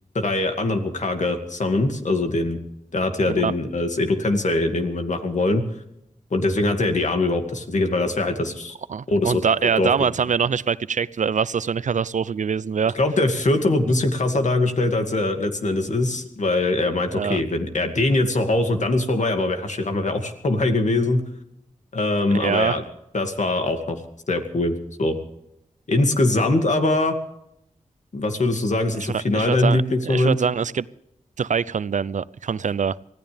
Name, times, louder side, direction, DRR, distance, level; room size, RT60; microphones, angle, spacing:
voice 1, 0.1-2.6 2.9-5.6 6.3-8.7 9.1-10.1 12.9-21.2 21.9-22.8 23.1-24.0 24.3-25.2 25.9-27.1 28.1-30.4, left 2 dB, 70° left, 5 dB, 2.3 m, -22 dB
voice 2, 8.9-13.0 17.1-17.4 22.3-22.8 29.1-30.9 31.4-33.0, right 6 dB, 75° right, 18 dB, 0.5 m, -24 dB
25.0 x 16.5 x 3.5 m, 0.80 s
wide cardioid pair, 75°, 13 cm